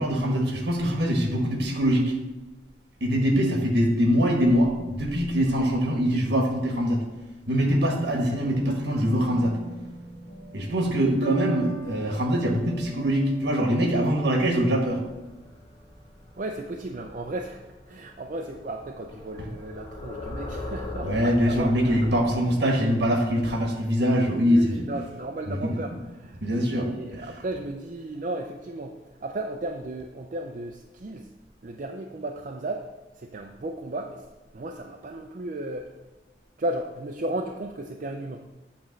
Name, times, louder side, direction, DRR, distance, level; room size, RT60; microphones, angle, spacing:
voice 1, 0.0-2.2 3.0-7.0 7.5-9.6 10.5-15.0 21.0-24.8 25.6-25.7 26.4-27.2, equal, 80° right, 2 dB, 1.2 m, -23 dB
sound 1, 8.2-17.3, right 4 dB, 65° left, 1.3 m, -41 dB
sound 2, 15.0-22.4, left 2 dB, 25° left, 0.8 m, -40 dB
voice 2, 16.3-21.9 24.5-26.4 26.7-31.3 31.6-34.2 34.5-35.9 36.6-38.4, right 2 dB, 45° right, 3 dB, 0.4 m, -35 dB
8.6 x 3.1 x 6.3 m, 1.1 s
head